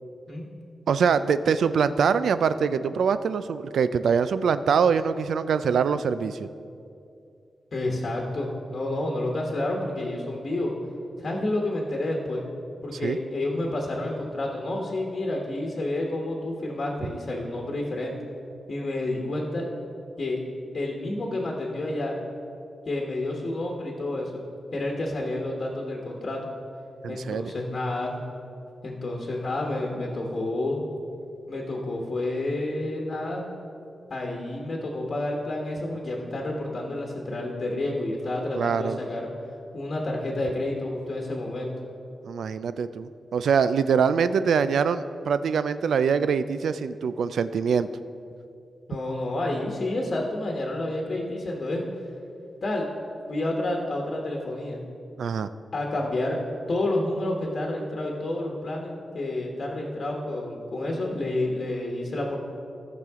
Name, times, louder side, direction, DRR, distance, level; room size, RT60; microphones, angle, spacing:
voice 1, 0.9-6.5 13.0-13.2 27.0-27.5 38.6-39.0 42.2-47.9 55.2-55.5, right 6 dB, 85° right, 13 dB, 0.4 m, -24 dB
voice 2, 7.7-10.7 11.2-12.5 12.8-18.2 18.7-19.7 20.2-20.4 20.7-22.1 22.9-24.4 24.7-26.5 27.1-28.1 28.8-30.8 31.5-33.5 34.1-39.3 39.7-41.7 48.9-51.8 52.6-52.9 53.3-54.8 55.7-56.4 56.7-62.4, left 1 dB, 40° left, 0 dB, 1.1 m, -29 dB
17.0 x 5.9 x 3.6 m, 2.5 s
wide cardioid pair, 175°, 0 cm